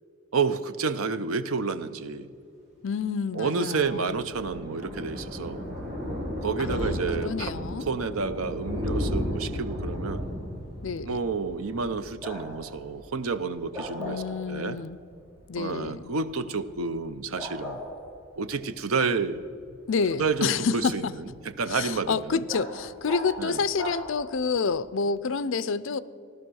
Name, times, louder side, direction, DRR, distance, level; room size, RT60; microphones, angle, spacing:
voice 1, 0.3-2.3 3.3-5.6 6.4-10.2 11.0-14.8 15.6-17.8 18.4-19.4 20.2-21.3 21.6-22.4 23.4-23.6, right 4 dB, 90° right, 12 dB, 0.7 m, -30 dB
voice 2, 2.8-4.2 6.6-7.9 10.8-11.2 14.0-15.0 15.5-16.1 19.9-21.1 21.7-26.0, left 5 dB, 70° left, 15 dB, 0.5 m, -29 dB
Thunder, 3.3-12.7 13.0-13.3 13.6-13.7 13.9-14.0, left 1 dB, 35° right, 4.3 m, -34 dB
Bark, 5.3-24.7, equal, 10° right, 4.4 m, -44 dB
15.5 x 12.0 x 6.3 m, 2.3 s
head